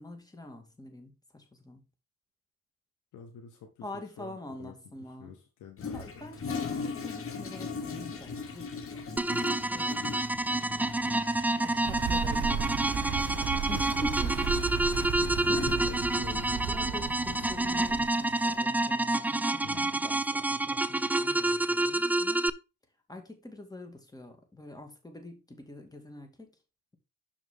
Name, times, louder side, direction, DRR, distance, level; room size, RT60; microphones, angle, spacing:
voice 1, 0.0-1.8 3.8-5.4 5.9-8.8 9.5-10.2 10.5-10.7 11.6-14.3 14.7-16.0 16.5-22.5 23.1-26.5, left 1 dB, 10° left, 2.2 m, -44 dB
voice 2, 3.1-3.8 4.2-4.7 5.2-6.3 13.7-13.9 14.8-15.1 15.7-16.5 16.8-17.8 19.6-20.0, left 7 dB, 80° left, 1.4 m, -48 dB
Toilet flush, 5.8-18.6, left 4 dB, 45° left, 1.6 m, -40 dB
sound 1, 9.2-22.5, right 2 dB, 5° right, 0.4 m, -28 dB
sound 2, 11.8-18.1, right 8 dB, 70° right, 1.2 m, -35 dB
6.4 x 6.3 x 3.7 m
cardioid pair, 90°, 30 cm